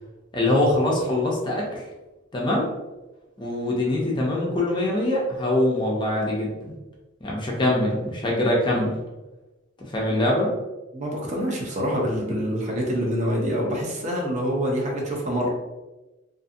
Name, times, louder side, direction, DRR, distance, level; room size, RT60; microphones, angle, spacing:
voice 1, 0.3-1.8 2.3-2.7 3.4-6.7 7.2-9.0 9.9-10.5, left 1 dB, 25° left, -3 dB, 0.5 m, -23 dB
voice 2, 10.9-15.5, equal, 35° right, -2 dB, 0.5 m, -26 dB
2.5 x 2.5 x 2.5 m, 1.1 s
head